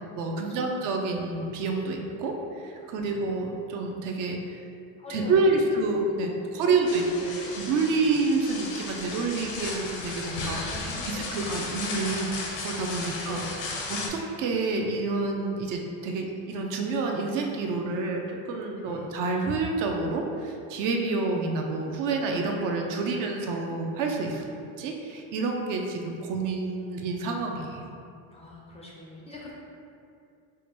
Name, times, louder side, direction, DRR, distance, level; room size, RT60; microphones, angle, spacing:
voice 1, 0.2-4.6 5.1-10.6 11.0-12.4 12.6-24.5 24.8-28.0, right 3 dB, 60° right, 2 dB, 0.5 m, -28 dB
voice 2, 5.0-5.3 5.6-5.7 6.2-6.7 7.2-7.7 8.0-8.2 10.7-11.6 13.0-13.8 18.8-19.1 28.3-29.5, left 2 dB, 20° left, -4 dB, 0.3 m, -44 dB
sound 1, 6.9-14.1, left 3 dB, 85° left, 0.7 m, -35 dB
4.8 x 2.2 x 3.0 m, 2.4 s
cardioid pair, 135°, 36 cm